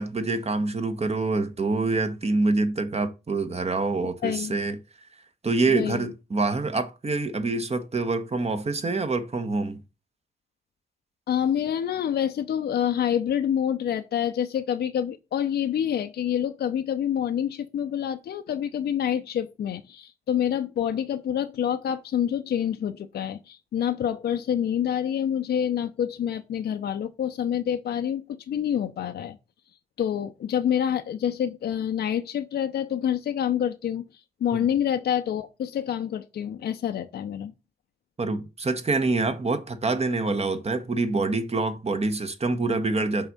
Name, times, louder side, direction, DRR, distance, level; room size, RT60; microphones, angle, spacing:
voice 1, 0.0-4.8 5.4-9.8 38.2-43.3, right 3 dB, 35° right, 1.1 m, -26 dB
voice 2, 4.2-4.6 5.7-6.1 11.3-29.4 30.0-37.5, left 9 dB, 60° left, 0.6 m, -27 dB
5.6 x 3.5 x 5.3 m
hypercardioid pair, 40°, 19 cm